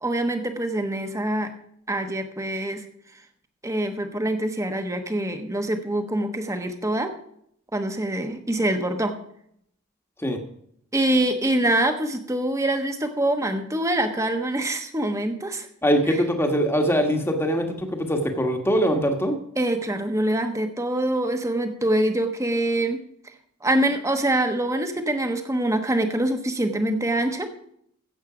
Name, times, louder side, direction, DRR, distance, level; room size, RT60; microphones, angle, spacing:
voice 1, 0.0-1.5 1.9-2.8 3.6-7.1 7.7-9.2 10.9-15.7 19.6-23.0 23.6-27.5, right 1 dB, 15° right, 7 dB, 1.1 m, -25 dB
voice 2, 15.8-19.4, equal, 10° left, 3 dB, 1.4 m, -22 dB
14.5 x 8.2 x 5.0 m, 0.70 s
head